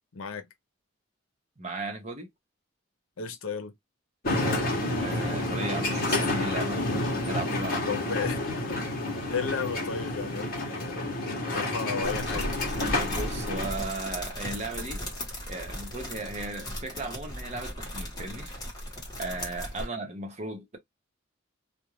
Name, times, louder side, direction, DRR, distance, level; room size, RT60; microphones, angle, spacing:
voice 1, 0.1-0.5 3.2-3.7 7.9-8.8 9.3-11.2 11.5-12.5, left 5 dB, 90° left, 0.6 m, -34 dB
voice 2, 1.6-2.3 4.4-4.7 5.0-6.9 7.1-8.0 13.0-15.0 15.5-18.6 19.2-20.8, right 2 dB, 35° right, 0.7 m, -36 dB
sound 1, 4.2-13.7, left 2 dB, 45° left, 0.9 m, -29 dB
sound 2, 12.0-19.9, equal, 20° left, 1.0 m, -37 dB
2.4 x 2.1 x 3.0 m
head